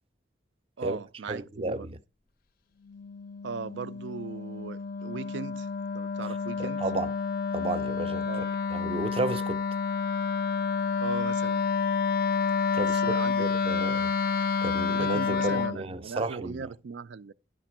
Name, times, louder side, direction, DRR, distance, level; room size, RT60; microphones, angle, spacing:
voice 1, 0.8-1.9 3.4-6.8 8.2-8.6 11.0-11.7 12.8-13.9 14.9-17.3, right 5 dB, 85° right, 0.4 m, -38 dB
voice 2, 1.3-2.0 6.6-7.1 7.5-8.3 8.7-9.6 12.7-16.6, right 2 dB, 30° right, 0.5 m, -33 dB
Wind instrument woodwind instrument, 2.9-15.8, left 5 dB, 55° left, 0.4 m, -29 dB
11.5 x 5.1 x 5.9 m
head